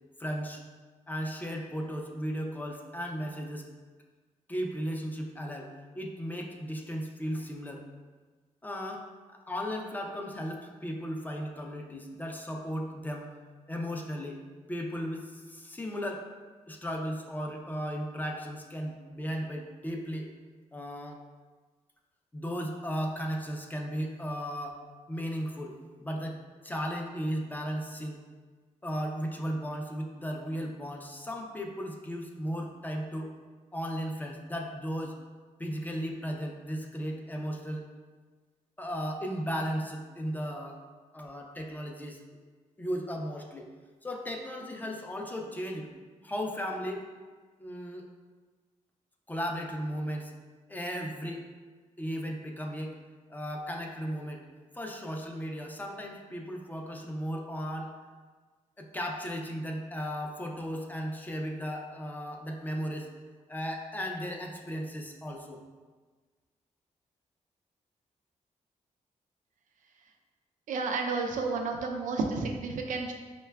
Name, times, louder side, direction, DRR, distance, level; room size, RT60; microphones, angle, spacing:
voice 1, 0.2-0.6 1.1-3.6 4.5-7.8 8.6-13.3 13.7-14.4 14.7-16.3 16.7-20.3 20.7-21.2 22.3-24.8 25.1-26.4 26.6-28.2 28.8-33.3 33.7-35.2 35.6-37.9 38.8-40.8 41.1-42.2 42.8-43.7 44.0-45.9 46.2-47.1 47.6-48.1 49.3-50.3 50.7-51.5 52.0-52.9 53.3-54.4 54.7-57.9 58.8-63.1 63.5-65.6, equal, 15° left, 1 dB, 0.4 m, -35 dB
voice 2, 70.7-73.1, right 4 dB, 80° right, 2 dB, 0.4 m, -31 dB
5.5 x 2.2 x 2.2 m, 1.4 s
wide cardioid pair, 125°, 13 cm